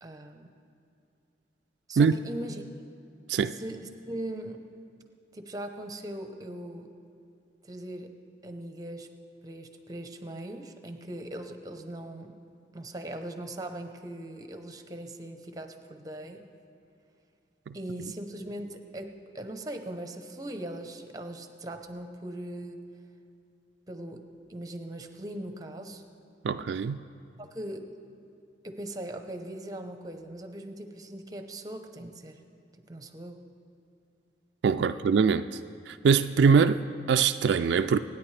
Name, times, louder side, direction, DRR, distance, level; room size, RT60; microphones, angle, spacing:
voice 1, 0.0-0.5 1.9-2.6 3.5-4.6 5.3-6.9 7.6-8.1 8.4-9.1 9.4-12.4 12.7-16.5 17.7-22.8 23.9-26.0 27.4-27.9 28.6-32.4 32.9-33.4 34.8-35.0, right 1 dB, 20° right, 0.8 m, -40 dB
voice 2, 26.4-27.0 34.6-35.5 35.9-38.0, right 6 dB, 80° right, 0.3 m, -23 dB
25.0 x 9.7 x 3.3 m
head